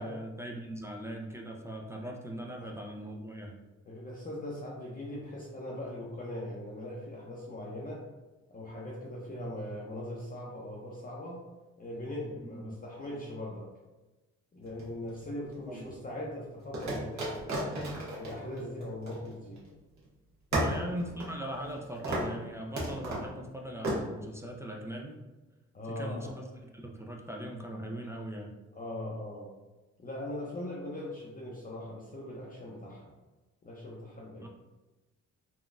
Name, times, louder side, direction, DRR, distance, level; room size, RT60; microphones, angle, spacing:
voice 1, 0.0-3.6 12.4-12.7 15.7-15.9 20.6-25.2 25.9-26.5 26.7-28.6 34.4-34.5, right 1 dB, 10° right, 0 dB, 0.4 m, -40 dB
voice 2, 3.9-8.0 8.5-11.4 11.8-13.7 14.5-19.6 20.5-20.8 25.7-26.3 28.7-29.5 30.0-33.1 33.6-34.5, left 1 dB, 30° left, -4 dB, 0.6 m, -40 dB
sound 1, 14.7-15.5 16.7-19.7 20.0-20.1 20.5-21.8 22.0-22.4 22.8-23.3 23.8-24.0, right 1 dB, 70° right, 1.1 m, -34 dB
3.8 x 2.2 x 2.4 m, 1.1 s
cardioid pair, 90°, 30 cm